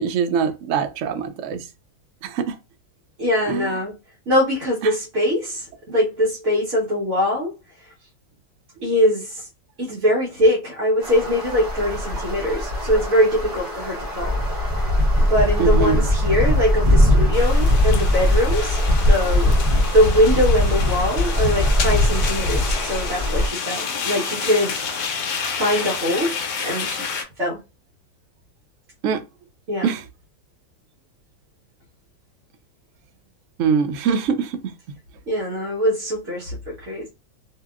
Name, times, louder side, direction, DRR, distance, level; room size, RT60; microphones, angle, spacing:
voice 1, 0.0-1.6 2.2-2.5 3.5-3.7 15.6-16.0 29.0-29.2 29.8-30.0 33.6-34.5, right 6 dB, 80° right, 0.6 m, -22 dB
voice 2, 3.2-4.0 4.3-7.5 8.8-9.5 9.8-14.4 15.3-18.8 19.1-19.5 19.9-24.8 25.6-26.4 26.6-27.1 27.4-27.6 29.7-29.9 34.0-34.1 35.3-37.1, equal, 50° right, 1.1 m, -22 dB
sound 1, 11.0-23.5, left 1 dB, 30° right, 1.2 m, -20 dB
sound 2, 17.3-27.2, left 6 dB, 75° left, 1.2 m, -29 dB
2.8 x 2.8 x 2.3 m
omnidirectional pair, 1.9 m